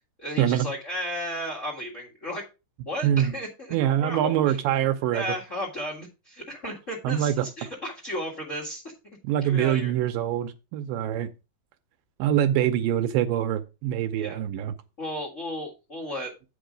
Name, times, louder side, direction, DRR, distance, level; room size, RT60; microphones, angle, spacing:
voice 1, 0.2-2.4 2.8-3.7 4.0-4.6 5.1-8.8 9.4-9.9 14.2-14.4 15.0-16.3, equal, 30° left, 1.3 m, -34 dB
voice 2, 3.0-3.3 3.7-5.2 7.0-7.5 9.2-11.3 12.2-14.7, right 11 dB, 80° right, 2.2 m, -24 dB
8.8 x 5.3 x 5.0 m
omnidirectional pair, 4.2 m